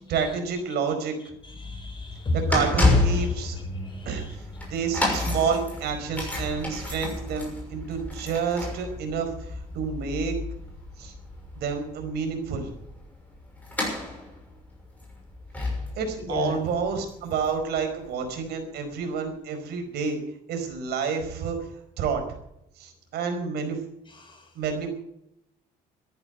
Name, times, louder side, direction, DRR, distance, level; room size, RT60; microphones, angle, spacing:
voice 1, 0.1-1.1 2.3-3.6 4.0-4.2 4.7-10.3 11.0-11.1 11.5-12.7 15.9-20.2 20.5-21.6 22.0-22.2 22.8-23.8 24.5-24.9, right 6 dB, 75° right, 5 dB, 4.8 m, -29 dB
voice 2, 1.4-2.4 3.2-3.3 3.8-4.3 16.2-16.6 24.1-24.5, left 2 dB, 30° left, 6 dB, 4.6 m, -33 dB
sound 1, 1.4-18.4 19.0-19.1, left 2 dB, 10° left, 6.3 m, -30 dB
14.0 x 10.5 x 9.3 m, 0.79 s
cardioid pair, 110°, 17 cm